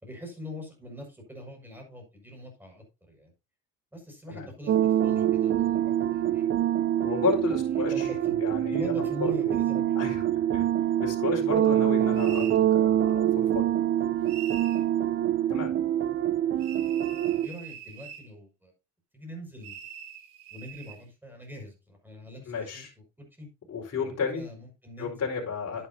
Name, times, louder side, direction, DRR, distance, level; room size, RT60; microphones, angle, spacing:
voice 1, 0.0-3.3 3.9-6.5 7.1-8.4 8.7-10.1 17.3-18.7 19.1-19.8 20.5-22.9 23.2-23.5 23.9-25.3 25.8-25.9, equal, 5° right, 2 dB, 6.1 m, -43 dB
sound 1, 4.7-17.5, right 11 dB, 30° right, 0.5 m, -25 dB
voice 2, 7.0-8.1 8.4-9.6 10.0-10.2 10.5-10.6 11.0-13.7 15.5-15.7 22.5-22.9 23.7-24.4 25.0-25.9, left 6 dB, 35° left, -2 dB, 4.7 m, -32 dB
sound 2, 12.1-12.6 14.3-14.8 16.6-18.3 19.6-21.0, right 9 dB, 90° right, 1.5 m, -43 dB
10.5 x 10.5 x 2.8 m, 0.28 s
supercardioid pair, 95°, 42 cm